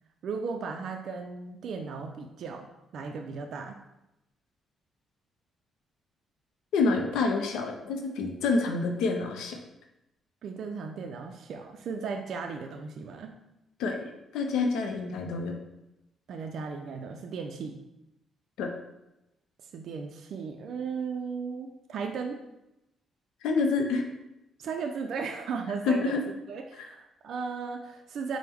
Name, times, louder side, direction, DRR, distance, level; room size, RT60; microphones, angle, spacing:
voice 1, 0.2-2.7 2.9-3.7 10.4-13.3 16.3-17.8 19.6-22.4 24.6-26.2 26.5-28.4, right 5 dB, 65° right, 4 dB, 0.3 m, -36 dB
voice 2, 6.7-9.6 13.8-14.1 14.3-15.6 18.6-18.7 23.4-24.0 25.9-26.2, left 4 dB, 90° left, 3 dB, 0.5 m, -27 dB
4.5 x 2.0 x 3.4 m, 0.91 s
cardioid pair, 90°, 0 cm